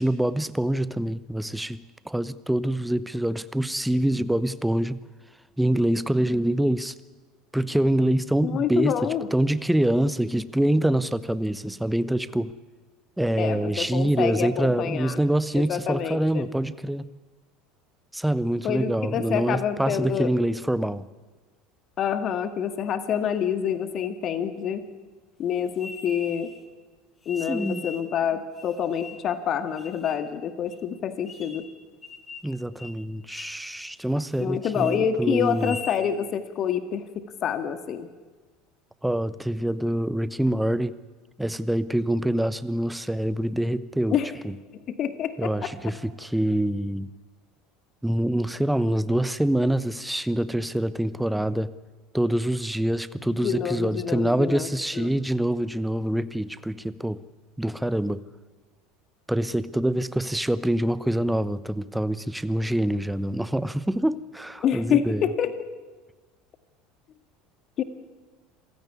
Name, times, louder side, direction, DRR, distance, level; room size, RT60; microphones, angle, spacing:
voice 1, 0.0-5.0 5.6-6.9 7.5-12.5 13.2-17.1 18.1-21.0 27.5-27.9 32.4-35.8 39.0-41.0 41.4-44.2 44.4-44.5 45.4-47.1 48.0-51.7 52.1-57.2 57.6-58.2 59.3-65.3, right 1 dB, 5° right, 16 dB, 1.0 m, -25 dB
voice 2, 8.4-9.3 13.4-15.2 15.6-16.5 18.6-20.3 22.0-24.8 25.4-26.5 27.3-31.6 34.4-38.1 44.1-44.3 44.9-45.7 53.3-54.7 55.0-55.1 64.6-65.5 67.8-67.9, left 8 dB, 40° left, 10 dB, 1.9 m, -27 dB
sound 1, 25.8-26.6 27.2-28.1 28.5-29.3 29.8-30.3 30.7-30.8 31.3-31.7 32.0-32.5 32.8-33.0 33.3-33.6 34.0-34.4 34.7-35.0 35.5-36.1, left 4 dB, 25° left, 2.7 m, -41 dB
26.5 x 16.0 x 9.7 m, 1.3 s
figure-of-eight pair, 70°, 0 cm